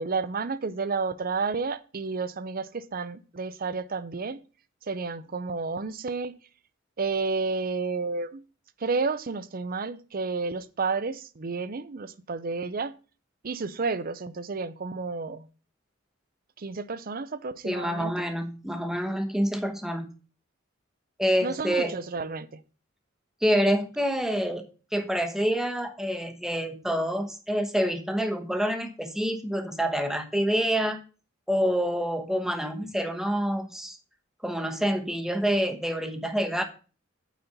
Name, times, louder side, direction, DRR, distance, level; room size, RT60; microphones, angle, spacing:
voice 1, 0.0-4.4 4.8-6.3 7.0-8.4 8.8-12.9 13.4-15.5 16.6-18.3 21.4-22.6, right 4 dB, 45° right, 15 dB, 0.6 m, -31 dB
voice 2, 17.6-20.1 21.2-21.9 23.4-24.6 24.9-31.0 31.5-34.0 34.4-36.6, equal, ahead, 6 dB, 1.0 m, -27 dB
9.0 x 4.3 x 6.7 m, 0.36 s
head